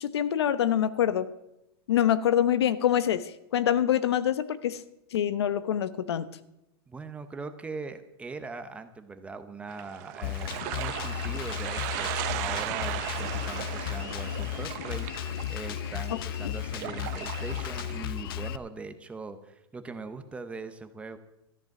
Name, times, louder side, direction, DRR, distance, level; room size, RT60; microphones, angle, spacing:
voice 1, 0.0-1.3 1.9-3.2 3.5-4.8 5.1-6.3, left 10 dB, 85° left, 13 dB, 0.9 m, -25 dB
voice 2, 6.9-15.1 15.5-21.2, right 4 dB, 10° right, 8 dB, 0.7 m, -41 dB
sound 1, 9.7-18.0, right 16 dB, 40° right, 0.6 m, -37 dB
Drum kit, 10.2-18.6, left 11 dB, 60° left, 0.7 m, -34 dB
13.5 x 10.5 x 6.0 m, 0.85 s
supercardioid pair, 155°, 13 cm